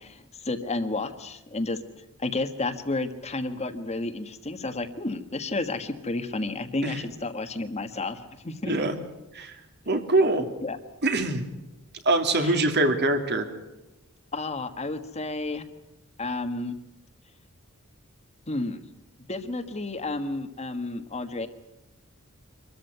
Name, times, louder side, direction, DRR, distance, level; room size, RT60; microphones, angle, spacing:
voice 1, 0.0-1.8 2.2-8.7 10.6-10.8 12.4-12.6 14.3-15.6 16.2-16.8 18.5-18.8 19.3-21.5, left 2 dB, 30° left, 8 dB, 1.5 m, -31 dB
voice 2, 8.6-8.9 9.3-9.5 9.9-10.5 11.0-11.4 12.0-13.5, right 2 dB, 50° right, 6 dB, 2.8 m, -23 dB
25.5 x 14.0 x 9.3 m, 0.99 s
head